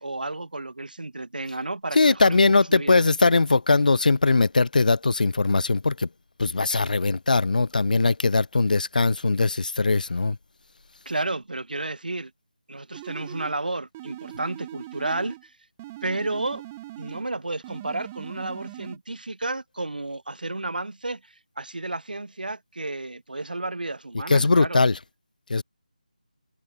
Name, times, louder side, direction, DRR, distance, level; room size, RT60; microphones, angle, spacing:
voice 1, 0.0-3.0 11.1-12.3 12.7-15.4 16.0-16.6 17.0-21.2 21.6-24.8, right 2 dB, 85° right, 0.9 m, -32 dB
voice 2, 1.9-6.1 6.4-10.4 24.3-25.0 25.5-25.6, left 3 dB, 70° left, 0.3 m, -20 dB
sound 1, 12.9-13.6 13.9-15.5 15.8-17.3 17.6-19.0, right 16 dB, 10° right, 0.6 m, -41 dB
figure-of-eight pair, 170°, 5 cm